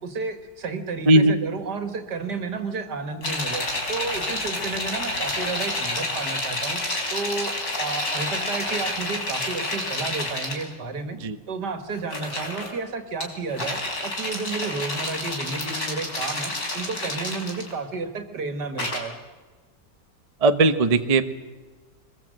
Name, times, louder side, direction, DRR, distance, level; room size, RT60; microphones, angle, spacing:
voice 1, 0.0-3.6 3.9-6.8 7.1-7.5 7.8-11.2 11.5-19.1, right 4 dB, 75° right, 8 dB, 2.4 m, -31 dB
voice 2, 1.1-1.4 11.2-11.4 20.4-21.2, right 2 dB, 30° right, 9 dB, 0.8 m, -18 dB
sound 1, 3.2-10.6 12.0-12.7 13.2-18.0 18.8-19.0, left 2 dB, 60° left, 4.5 m, -29 dB
23.0 x 21.0 x 7.8 m, 1.3 s
omnidirectional pair, 1.8 m